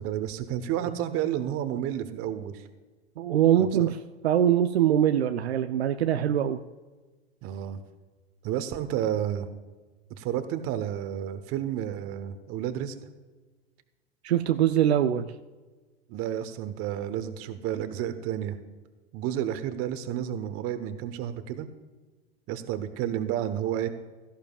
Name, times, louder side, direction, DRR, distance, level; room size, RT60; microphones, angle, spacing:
voice 1, 0.0-2.6 3.6-3.9 7.4-7.8 8.4-9.5 10.2-12.9 16.1-18.6 19.1-21.7 22.5-23.9, right 10 dB, 45° right, 10 dB, 1.2 m, -31 dB
voice 2, 3.2-6.6 14.2-15.3, right 10 dB, 80° right, 8 dB, 0.6 m, -23 dB
17.0 x 13.5 x 2.4 m, 1.3 s
hypercardioid pair, 100°, 31 cm